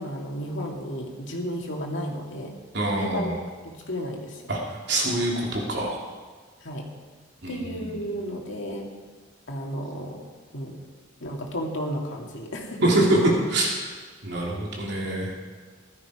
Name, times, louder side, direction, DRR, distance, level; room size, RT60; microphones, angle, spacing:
voice 1, 0.0-2.5 3.0-3.3 3.6-4.4 6.6-6.9 7.5-8.9 9.5-10.2 10.5-10.8 11.2-12.9, equal, 70° left, 0 dB, 2.5 m, -33 dB
voice 2, 2.7-3.4 4.5-6.0 7.4-8.0 12.8-13.7 14.2-15.3, right 1 dB, 60° right, -2 dB, 3.0 m, -25 dB
15.5 x 12.5 x 4.9 m, 1.5 s
head